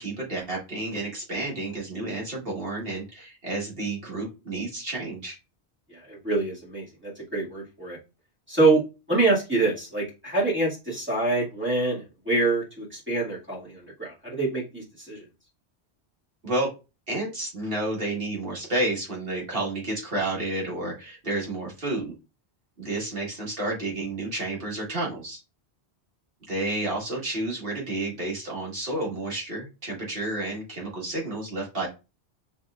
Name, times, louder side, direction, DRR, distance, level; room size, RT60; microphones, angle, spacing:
voice 1, 0.0-5.4 16.4-16.7 17.1-22.1 22.8-25.4 26.5-31.9, right 2 dB, 60° right, -3 dB, 1.9 m, -30 dB
voice 2, 5.9-8.0 8.5-8.8 9.1-15.3, right 3 dB, 10° right, -6 dB, 2.0 m, -26 dB
5.4 x 3.4 x 2.4 m, 0.29 s
omnidirectional pair, 1.1 m